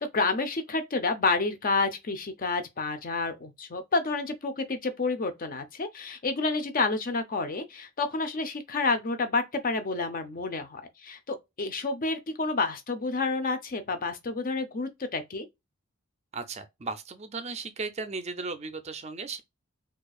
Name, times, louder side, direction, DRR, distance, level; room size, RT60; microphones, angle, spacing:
voice 1, 0.0-15.5, left 3 dB, 40° left, 0.6 m, -29 dB
voice 2, 16.3-19.4, right 4 dB, 30° right, 0.4 m, -36 dB
4.4 x 2.4 x 2.3 m
head